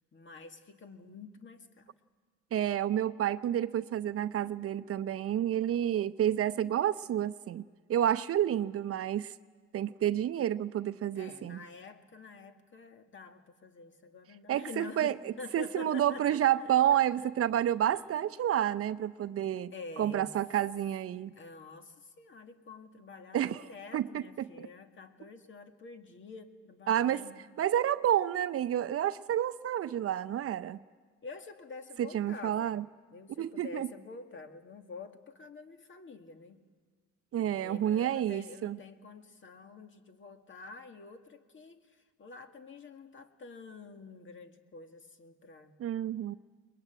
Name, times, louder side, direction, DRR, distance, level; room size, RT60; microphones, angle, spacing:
voice 1, 0.1-1.9 11.1-16.7 17.2-17.3 17.9-18.0 19.7-20.3 21.3-27.4 31.2-32.7 33.1-36.6 37.4-41.8 42.2-45.8, left 4 dB, 40° left, 6 dB, 2.0 m, -48 dB
voice 2, 2.5-9.3 9.7-11.6 14.5-21.3 23.3-23.6 23.9-24.5 26.9-27.2 27.6-30.8 32.0-32.8 33.4-33.9 37.3-38.8 45.8-46.4, right 11 dB, 50° right, 13 dB, 0.7 m, -30 dB
22.5 x 21.0 x 9.1 m, 1.5 s
supercardioid pair, 80°, 29 cm